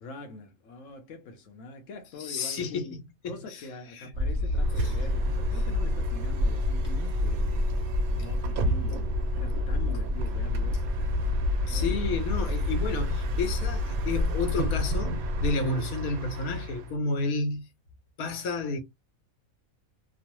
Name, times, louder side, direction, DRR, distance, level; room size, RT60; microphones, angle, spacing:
voice 1, 0.0-3.0 3.3-7.7 8.1-10.8 11.7-12.0, left 3 dB, 70° left, 1.0 m, -44 dB
voice 2, 2.2-3.0 3.2-3.3 4.0-4.1 4.8-4.9 11.7-17.6 18.2-18.8, left 3 dB, 90° left, 1.3 m, -31 dB
sound 1, 4.1-15.5, left 2 dB, 45° right, 1.1 m, -28 dB
Bus, 4.5-17.0, right 2 dB, 85° right, 1.1 m, -35 dB
3.0 x 2.1 x 2.9 m
omnidirectional pair, 1.5 m